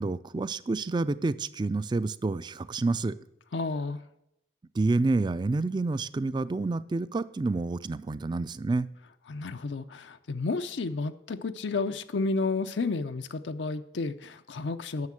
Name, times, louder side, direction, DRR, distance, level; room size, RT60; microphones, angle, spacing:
voice 1, 0.0-3.2 4.7-8.9, right 3 dB, 25° right, 16 dB, 0.3 m, -28 dB
voice 2, 3.5-4.0 9.3-15.1, left 3 dB, 85° left, 9 dB, 0.6 m, -31 dB
9.6 x 6.6 x 7.4 m, 0.82 s
head